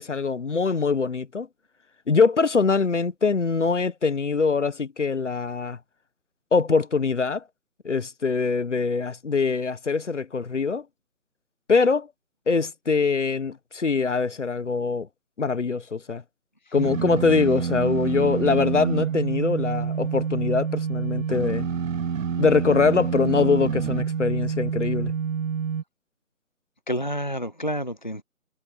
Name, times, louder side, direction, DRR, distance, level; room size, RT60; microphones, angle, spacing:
voice 1, 0.0-1.5 2.1-5.8 6.5-7.4 7.8-10.8 11.7-12.1 12.5-15.1 15.4-16.2 16.7-21.7 22.4-25.1, left 4 dB, 55° left, 1.2 m, -23 dB
sound 1, 16.8-25.8, right 7 dB, 65° right, 0.6 m, -27 dB
voice 2, 26.9-28.2, equal, 35° left, 0.5 m, -29 dB
figure-of-eight pair, 155°, 43 cm